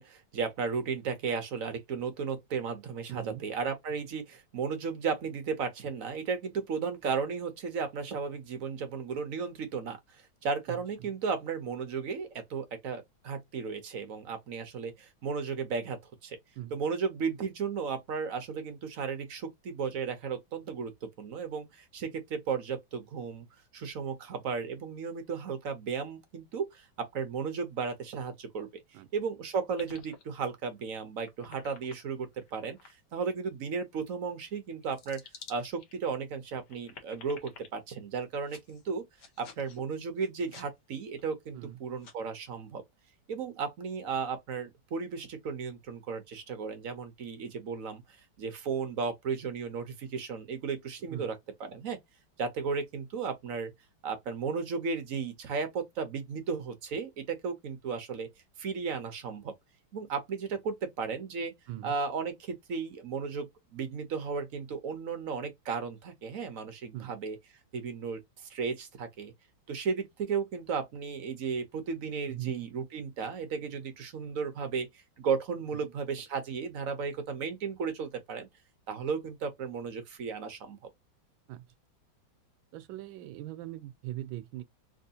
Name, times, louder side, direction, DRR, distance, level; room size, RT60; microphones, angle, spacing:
voice 1, 0.0-16.4 16.7-23.4 23.7-28.7 29.1-35.2 35.5-39.0 39.4-42.8 43.3-48.0 48.4-52.0 52.4-53.7 54.0-58.3 58.6-59.5 59.9-61.5 61.8-67.4 67.7-68.2 68.5-69.3 69.7-78.5 78.9-80.8, right 5 dB, 60° right, 0.9 m, -34 dB
voice 2, 3.1-3.4 16.6-16.8 28.9-29.1 41.5-41.8 51.1-51.3 61.7-61.9 66.9-67.1 72.3-72.6 75.7-75.8 81.5-81.6 82.7-84.6, right 14 dB, 80° right, 1.4 m, -40 dB
sound 1, 29.7-30.8 31.2-32.9 33.3-33.4 34.1-34.2 34.8-35.9 36.5-37.7 38.4-38.8 39.2-39.8 40.2-40.7 41.2-41.3 41.7-41.8 42.0-42.1, left 5 dB, 60° left, 1.5 m, -51 dB
3.4 x 3.0 x 2.7 m
omnidirectional pair, 2.2 m